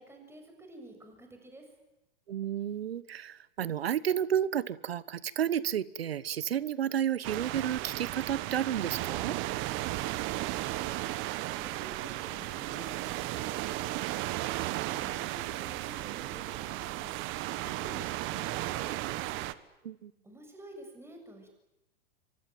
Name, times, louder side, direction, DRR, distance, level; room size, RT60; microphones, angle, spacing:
voice 1, 0.0-1.7 10.5-17.1 17.6-19.3 20.2-21.5, right 1 dB, 10° right, 4 dB, 7.4 m, -50 dB
voice 2, 2.3-9.4 19.8-20.1, right 9 dB, 85° right, 19 dB, 1.1 m, -31 dB
sound 1, 7.2-19.5, right 17 dB, 45° right, 1.4 m, -35 dB
24.5 x 24.5 x 9.3 m, 0.93 s
hypercardioid pair, 115°, 29 cm